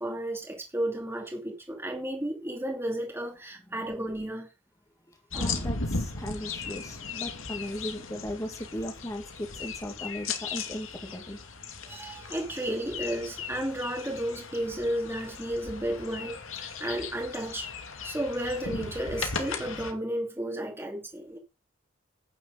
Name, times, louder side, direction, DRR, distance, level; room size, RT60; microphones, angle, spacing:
voice 1, 0.0-4.5 5.3-5.7 11.9-17.7 18.0-21.4, right 1 dB, 10° right, 2.6 m, -33 dB
voice 2, 5.1-11.4, equal, 15° left, 2.2 m, -37 dB
sound 1, 5.3-19.9, left 4 dB, 70° left, 2.4 m, -37 dB
10.5 x 9.5 x 4.0 m
head